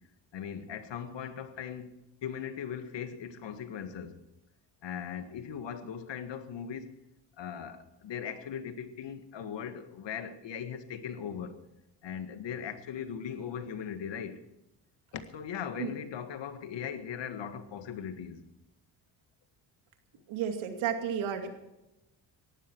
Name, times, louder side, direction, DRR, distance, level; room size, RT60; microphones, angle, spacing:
voice 1, 0.3-4.2 4.8-7.0 7.4-11.6 12.0-14.4 15.1-18.4, left 8 dB, 65° left, 1.8 m, -39 dB
voice 2, 20.3-21.5, right 8 dB, 80° right, 2.6 m, -32 dB
18.5 x 14.5 x 4.7 m
supercardioid pair, 65°, 47 cm